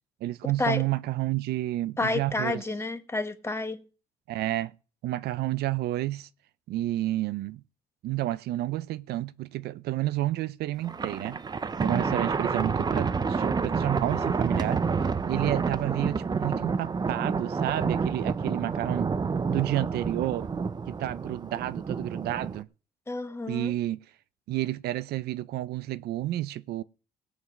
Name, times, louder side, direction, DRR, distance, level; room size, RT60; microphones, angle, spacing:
voice 1, 0.2-2.6 4.3-4.7 5.0-6.3 6.7-7.6 8.0-11.4 11.8-14.8 15.3-19.1 19.5-20.5 20.9-22.7 23.5-24.0 24.5-26.8, right 15 dB, 70° right, 0.6 m, -30 dB
voice 2, 2.0-3.8 23.1-23.7, left 3 dB, 15° left, 1.3 m, -30 dB
Thunder, 10.8-22.6, right 5 dB, 25° right, 0.7 m, -29 dB
17.5 x 7.2 x 6.3 m
cardioid pair, 110°, 17 cm